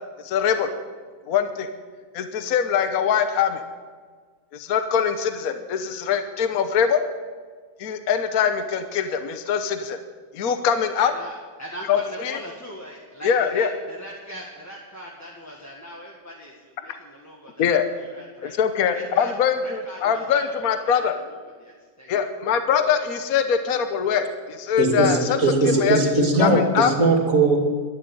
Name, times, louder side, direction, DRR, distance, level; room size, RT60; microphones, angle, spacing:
voice 1, 0.2-0.7 1.3-1.7 2.1-3.6 4.5-7.0 7.8-10.0 10.3-11.1 11.9-12.4 13.2-13.7 17.6-17.8 18.4-21.1 22.1-25.4 25.6-26.0 26.4-26.9, left 7 dB, 60° left, 8 dB, 1.3 m, -23 dB
voice 2, 11.0-18.5 18.9-19.3 19.6-22.1, equal, 10° left, -3 dB, 1.6 m, -40 dB
voice 3, 24.8-27.6, right 2 dB, 50° right, 2 dB, 2.8 m, -19 dB
12.0 x 11.0 x 9.1 m, 1.5 s
omnidirectional pair, 1.8 m